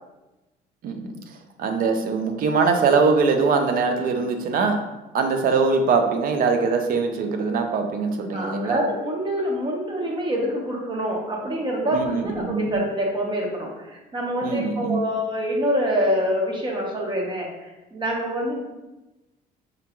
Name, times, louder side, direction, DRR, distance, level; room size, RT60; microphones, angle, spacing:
voice 1, 0.8-1.1 1.6-4.8 5.1-8.8 11.9-12.8 14.4-15.0, right 4 dB, 55° right, 5 dB, 0.5 m, -22 dB
voice 2, 8.3-18.6, equal, 25° right, -1 dB, 0.9 m, -26 dB
5.0 x 2.2 x 2.9 m, 1.0 s
cardioid pair, 110°, 17 cm